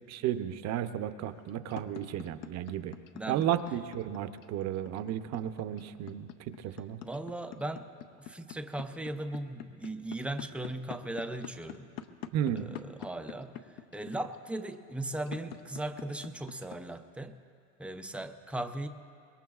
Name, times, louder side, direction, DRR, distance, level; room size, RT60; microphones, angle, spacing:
voice 1, 0.1-2.9 3.3-6.3 6.6-7.0 12.3-12.7, right 11 dB, 40° right, 10 dB, 0.7 m, -33 dB
sound 1, 1.4-17.0, left 10 dB, 70° left, 0.9 m, -44 dB
voice 2, 3.1-3.6 7.0-7.9 8.2-11.9 12.5-13.6 13.9-17.4 17.8-18.9, right 1 dB, 5° right, 7 dB, 0.4 m, -38 dB
25.0 x 21.5 x 2.4 m, 2.3 s
supercardioid pair, 130°, 40 cm